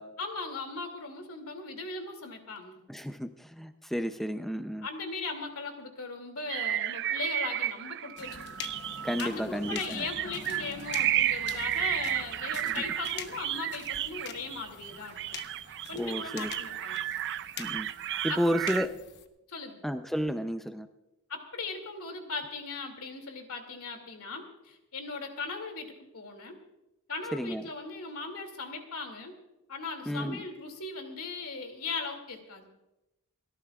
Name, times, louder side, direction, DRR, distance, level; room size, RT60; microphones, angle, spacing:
voice 1, 0.2-2.8 4.8-8.6 9.0-15.2 15.9-17.0 18.3-18.4 19.5-19.8 21.3-26.6 27.1-29.3 29.7-32.7, left 4 dB, 70° left, 5 dB, 2.5 m, -38 dB
voice 2, 2.9-4.9 9.0-10.0 12.8-12.9 16.0-16.5 17.6-17.9 18.2-18.9 19.8-20.9 27.3-27.6 30.1-30.4, equal, ahead, 8 dB, 0.5 m, -32 dB
sound 1, 6.5-9.2 9.6-18.9, right 12 dB, 55° right, 0.4 m, -33 dB
sound 2, 8.2-19.2, left 6 dB, 50° left, 1.0 m, -45 dB
29.5 x 13.5 x 2.4 m, 0.96 s
head